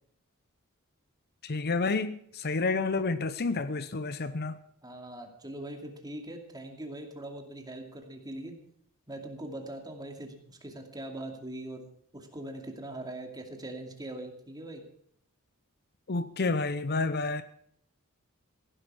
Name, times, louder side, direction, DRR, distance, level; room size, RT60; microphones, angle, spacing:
voice 1, 1.4-4.6 16.1-17.4, left 3 dB, 50° left, 0.7 m, -29 dB
voice 2, 4.8-8.6 9.1-14.8, right 1 dB, 20° right, 2.5 m, -41 dB
16.0 x 11.0 x 6.2 m
head